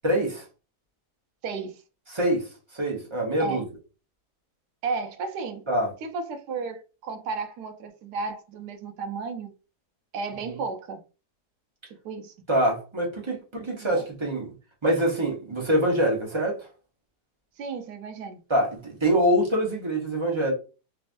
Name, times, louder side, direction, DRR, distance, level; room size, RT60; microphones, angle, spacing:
voice 1, 0.0-0.4 2.1-2.5 2.7-3.6 5.7-5.9 10.4-10.6 12.5-14.5 14.8-16.7 18.5-20.5, right 1 dB, 20° right, 0.9 m, -25 dB
voice 2, 1.4-1.8 3.4-3.6 4.8-5.6 6.0-9.5 10.1-11.0 12.0-12.3 13.8-14.0 17.6-18.4, right 4 dB, 80° right, 1.2 m, -33 dB
3.4 x 3.3 x 2.6 m
omnidirectional pair, 1.8 m